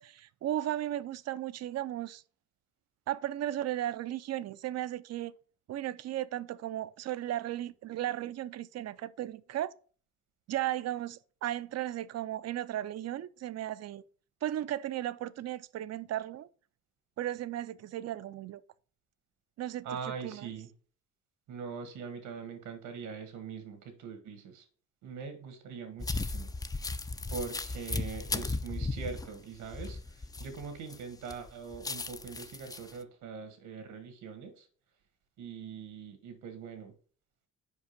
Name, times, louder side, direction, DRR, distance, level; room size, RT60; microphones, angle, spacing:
voice 1, 0.0-2.2 3.1-5.3 5.7-9.7 10.5-14.0 14.4-16.5 17.2-18.6 19.6-20.5, right 13 dB, 60° right, 0.5 m, -35 dB
voice 2, 19.8-20.7 21.5-24.7 25.0-26.5 27.3-34.7 35.4-36.9, right 6 dB, 85° right, 1.8 m, -42 dB
sound 1, 26.0-31.0 31.3-32.9, left 3 dB, 15° left, 0.4 m, -36 dB
5.3 x 5.0 x 5.2 m
cardioid pair, 90°, 30 cm